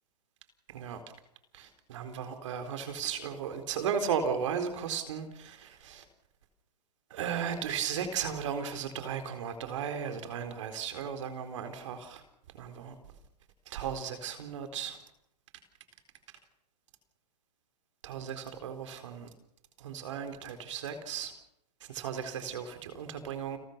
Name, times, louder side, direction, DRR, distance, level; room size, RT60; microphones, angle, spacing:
voice 1, 0.7-1.0 1.5-6.0 7.1-12.2 12.6-12.9 13.7-15.0 18.0-19.3 19.8-21.3 21.8-23.6, right 7 dB, 45° right, 8 dB, 4.1 m, -35 dB
30.0 x 13.0 x 6.8 m, 0.78 s
hypercardioid pair, 160°, 21 cm